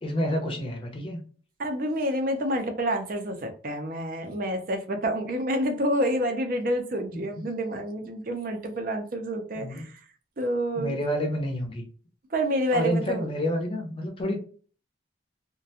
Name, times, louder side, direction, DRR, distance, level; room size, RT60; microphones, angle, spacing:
voice 1, 0.0-1.2 7.1-7.4 9.6-9.9 10.8-11.9 12.7-14.4, equal, 30° left, 2 dB, 0.5 m, -29 dB
voice 2, 1.6-10.0 10.4-11.0 12.3-13.3, equal, 45° right, 5 dB, 0.4 m, -28 dB
2.4 x 2.2 x 2.7 m, 0.42 s
head